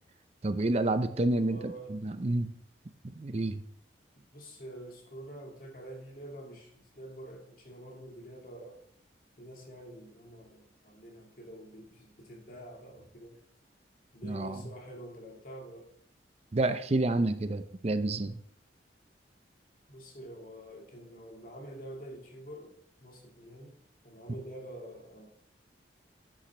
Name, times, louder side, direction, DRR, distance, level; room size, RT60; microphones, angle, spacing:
voice 1, 0.4-2.5 3.0-3.6 14.2-14.6 16.5-18.4, right 2 dB, 35° right, 10 dB, 0.5 m, -29 dB
voice 2, 1.3-2.1 4.3-8.8 9.4-13.4 14.1-15.9 19.9-25.3, right 1 dB, 50° left, 0 dB, 2.4 m, -47 dB
10.0 x 8.9 x 3.3 m, 0.64 s
head